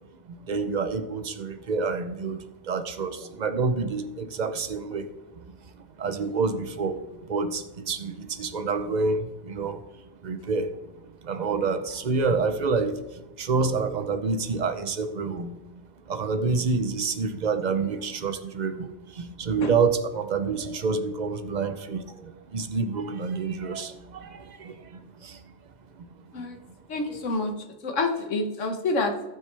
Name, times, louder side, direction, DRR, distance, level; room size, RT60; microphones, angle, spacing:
voice 1, 0.3-5.1 5.3-10.8 11.2-15.6 16.1-25.5 25.9-26.5 27.1-27.2, right 4 dB, 45° right, 10 dB, 0.7 m, -28 dB
voice 2, 26.9-27.5 27.8-29.1, left 3 dB, 85° left, 4 dB, 1.6 m, -27 dB
17.5 x 6.1 x 3.4 m, 1.0 s
omnidirectional pair, 1.2 m